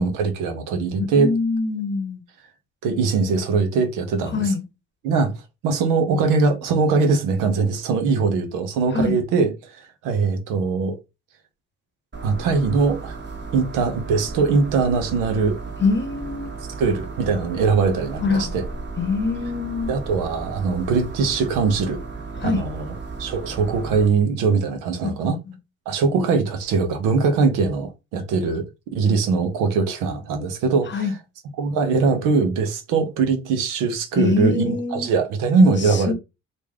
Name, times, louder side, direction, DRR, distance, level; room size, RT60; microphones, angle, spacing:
voice 1, 0.0-1.3 2.8-4.5 5.0-5.3 5.6-11.0 12.2-13.2 13.5-15.6 16.8-18.6 19.9-22.0 22.4-22.9 23.2-25.4 25.9-28.7 28.9-31.1 31.6-36.1, right 4 dB, 85° right, 0.8 m, -21 dB
voice 2, 1.1-2.2 4.3-4.6 8.9-9.2 15.8-16.5 18.2-18.5 19.0-19.9 22.3-22.6 25.0-25.1 25.5-25.6 30.9-31.1 34.2-35.1 35.8-36.1, left 4 dB, 35° left, 0.8 m, -24 dB
sound 1, 12.1-24.1, right 4 dB, 35° right, 1.4 m, -35 dB
3.1 x 2.5 x 3.5 m
supercardioid pair, 60°, 32 cm